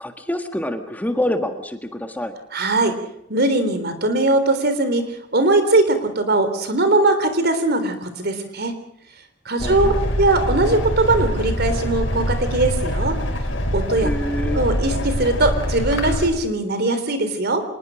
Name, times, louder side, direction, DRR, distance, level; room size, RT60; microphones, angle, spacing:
voice 1, 0.0-2.3 9.6-10.0 14.0-14.6, left 1 dB, 10° left, 6 dB, 1.6 m, -26 dB
voice 2, 2.5-2.9 3.3-8.8 9.5-13.2 13.7-14.1 14.4-17.6, right 2 dB, 55° right, 9 dB, 3.7 m, -20 dB
sound 1, 9.6-16.3, equal, 80° left, 4.9 m, -24 dB
26.0 x 20.5 x 6.4 m, 0.75 s
head